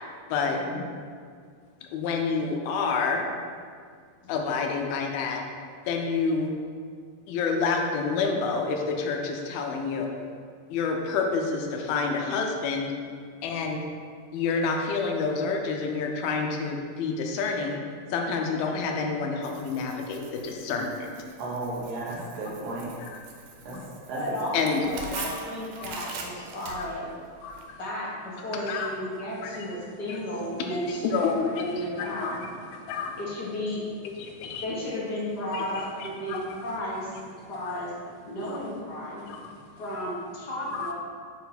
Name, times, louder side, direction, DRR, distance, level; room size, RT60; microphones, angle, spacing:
voice 1, 0.5-0.8 21.4-22.9 23.6-23.8 24.1-24.2, right 2 dB, 55° right, -5 dB, 1.9 m, -34 dB
voice 2, 1.9-3.2 4.3-5.4 5.9-6.5 7.3-10.1 10.7-12.9 13.4-13.8 14.3-17.8 18.1-21.1 23.0-23.1 24.5-24.8 25.8-26.2 26.8-26.9 27.4-27.8 28.7-28.9 29.4-29.5 30.1-30.2 30.7-31.6 32.2-32.4 32.9-33.2 34.2-34.7 35.5-35.6 36.0-36.4 39.3-39.4 40.7-40.9, left 4 dB, 85° left, 2 dB, 2.6 m, -28 dB
Tearing, 19.4-27.6, right 4 dB, 90° right, 2.7 m, -43 dB
voice 3, 24.2-27.1 27.8-32.3 33.2-33.8 34.6-37.9 38.2-39.3 39.8-40.9, equal, 55° left, -6 dB, 1.1 m, -33 dB
8.2 x 4.7 x 4.1 m, 2.1 s
omnidirectional pair, 4.2 m